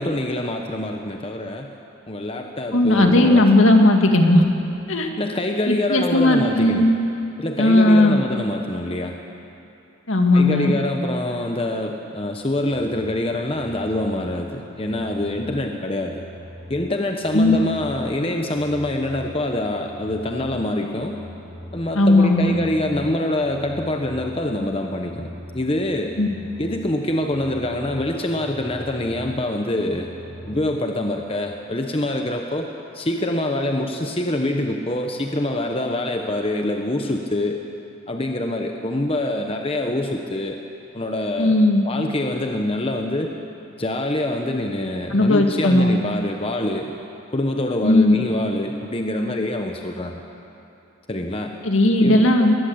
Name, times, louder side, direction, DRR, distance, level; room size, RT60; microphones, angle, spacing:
voice 1, 0.0-1.7 2.1-3.5 5.2-6.8 7.4-9.2 10.3-16.2 16.7-21.2 21.7-25.3 25.5-26.2 26.6-30.1 30.5-37.6 38.1-40.6 40.9-41.6 41.8-43.3 43.8-46.9 47.3-50.2 51.1-51.6 52.0-52.3, left 1 dB, 25° left, 3 dB, 1.0 m, -25 dB
voice 2, 2.7-4.5 4.9-5.1 5.7-6.9 7.6-8.2 10.1-10.7 17.3-17.6 22.0-22.5 26.2-26.3 41.4-41.8 45.1-46.0 47.8-48.2 51.6-52.5, left 1 dB, 65° left, 3 dB, 2.1 m, -16 dB
sound 1, 12.7-30.6, left 1 dB, 55° right, 6.2 m, -41 dB
21.0 x 18.5 x 8.0 m, 2.7 s
head